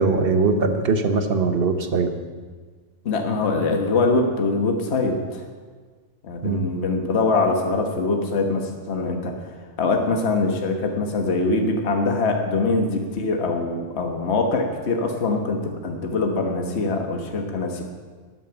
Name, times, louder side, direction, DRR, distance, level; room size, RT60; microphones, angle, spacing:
voice 1, 0.0-2.1 6.4-6.7, right 4 dB, 50° right, 7 dB, 1.2 m, -21 dB
voice 2, 3.0-5.4 6.2-9.3 9.8-17.8, left 3 dB, 55° left, 3 dB, 1.5 m, -23 dB
12.5 x 9.3 x 6.9 m, 1.5 s
omnidirectional pair, 1.4 m